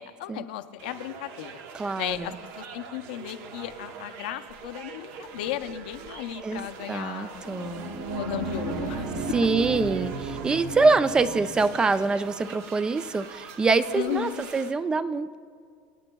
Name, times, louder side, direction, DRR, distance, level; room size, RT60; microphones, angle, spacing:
voice 1, 0.0-1.5 2.0-9.1 13.9-14.4, left 13 dB, 80° left, 9 dB, 0.6 m, -35 dB
sound 1, 0.8-14.7, right 6 dB, 60° right, 0.9 m, -44 dB
voice 2, 1.7-2.3 6.4-7.9 9.3-15.4, right 3 dB, 15° right, 14 dB, 0.4 m, -25 dB
sound 2, 7.5-12.1, right 3 dB, 85° right, 1.5 m, -34 dB
24.5 x 8.7 x 2.3 m, 2.1 s
supercardioid pair, 125°, 5 cm